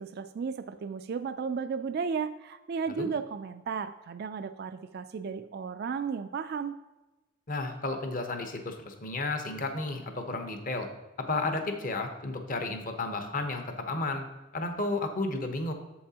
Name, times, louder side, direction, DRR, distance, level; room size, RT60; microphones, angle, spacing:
voice 1, 0.0-6.7, right 5 dB, 50° right, 9 dB, 0.3 m, -34 dB
voice 2, 7.5-10.9 11.3-14.2 14.5-15.7, left 2 dB, 45° left, 5 dB, 0.9 m, -32 dB
8.6 x 7.4 x 2.8 m, 1.1 s
head